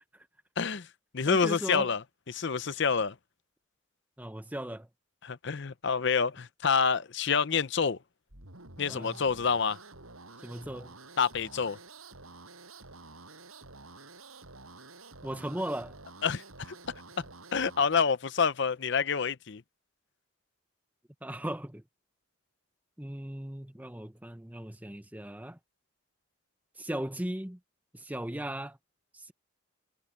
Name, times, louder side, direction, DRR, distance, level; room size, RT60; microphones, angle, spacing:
voice 1, 0.6-0.9 1.1-2.0 2.3-3.1 5.2-8.0 8.8-9.8 11.2-11.8 16.2-16.4 17.2-17.3 17.5-19.6, left 5 dB, 55° left, 0.6 m, -27 dB
voice 2, 1.2-1.9 4.2-4.9 8.9-9.2 10.4-10.9 15.2-16.0 21.2-21.8 23.0-25.6 26.8-27.6 27.9-28.8 29.1-29.3, right 1 dB, 5° right, 0.8 m, -37 dB
sound 1, 8.3-17.9, right 3 dB, 85° right, 7.6 m, -50 dB
head